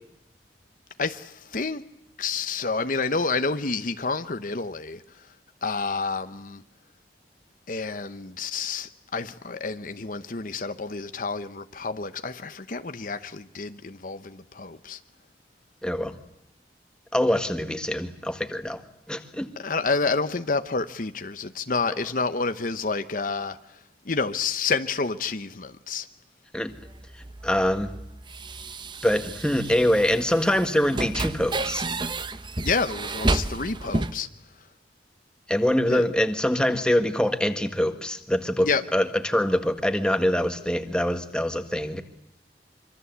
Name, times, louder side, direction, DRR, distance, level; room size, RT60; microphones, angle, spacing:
voice 1, 1.0-1.8 2.2-5.3 5.6-6.6 7.7-15.0 19.6-23.8 24.0-26.1 32.6-34.3 35.9-36.0 38.6-38.8, left 4 dB, 50° left, 1.0 m, -29 dB
voice 2, 15.8-16.1 17.1-18.8 19.1-19.5 26.5-26.7 27.4-27.9 29.0-31.8 35.5-42.0, left 1 dB, 5° left, 1.7 m, -24 dB
sound 1, 26.7-34.1, right 2 dB, 25° right, 1.0 m, -31 dB
25.5 x 25.0 x 8.1 m
head